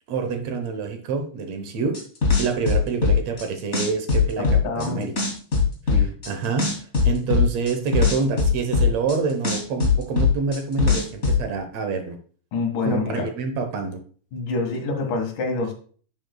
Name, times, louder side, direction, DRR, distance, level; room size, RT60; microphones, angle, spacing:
voice 1, 0.1-2.0 2.4-4.5 4.8-5.1 5.9-6.8 7.0-12.2 12.9-14.0, right 5 dB, 65° right, 7 dB, 2.0 m, -27 dB
sound 1, 1.9-3.4 3.7-4.9 5.2-6.3 6.6-9.1 9.4-11.4, left 5 dB, 25° left, 2.0 m, -19 dB
voice 2, 4.4-5.1 5.9-6.1 12.5-13.3 14.3-15.7, left 4 dB, 75° left, 2 dB, 3.3 m, -26 dB
11.0 x 6.7 x 2.3 m, 0.43 s
omnidirectional pair, 3.7 m